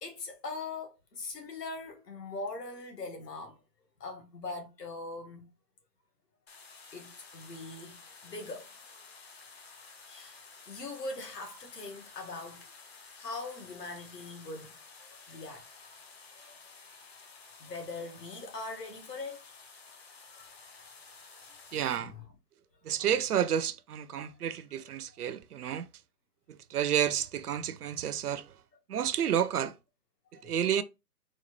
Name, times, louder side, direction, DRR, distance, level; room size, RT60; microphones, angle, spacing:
voice 1, 0.0-3.6 4.0-5.5 6.9-8.8 10.1-10.4 10.7-12.7 13.1-15.7 16.3-16.7 17.6-19.4 20.3-20.9 21.3-21.4 21.9-22.2 23.0-23.1 24.2-24.3 30.3-30.7, left 3 dB, 75° left, 1.5 m, -42 dB
sound 1, 6.5-22.0, left 4 dB, 40° left, 0.7 m, -53 dB
voice 2, 21.7-22.1 22.8-25.9 26.5-28.6 28.9-29.8 30.4-30.8, right 9 dB, 65° right, 0.5 m, -30 dB
4.1 x 2.3 x 3.0 m
hypercardioid pair, 155°, 49 cm